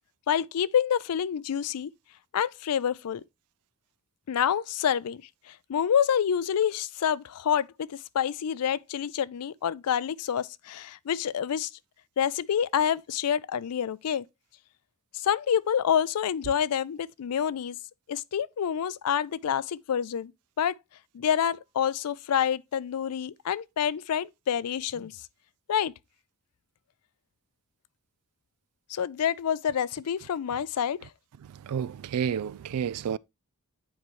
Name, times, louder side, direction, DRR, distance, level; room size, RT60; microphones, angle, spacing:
voice 1, 0.3-1.9 2.3-3.2 4.3-5.2 5.5-11.7 12.2-14.2 15.1-17.8 18.1-20.3 20.6-20.7 21.1-25.2 25.7-25.9 28.9-31.0, left 8 dB, 85° left, 0.4 m, -27 dB
voice 2, 31.7-33.2, right 8 dB, 80° right, 0.3 m, -30 dB
9.2 x 4.4 x 3.1 m
head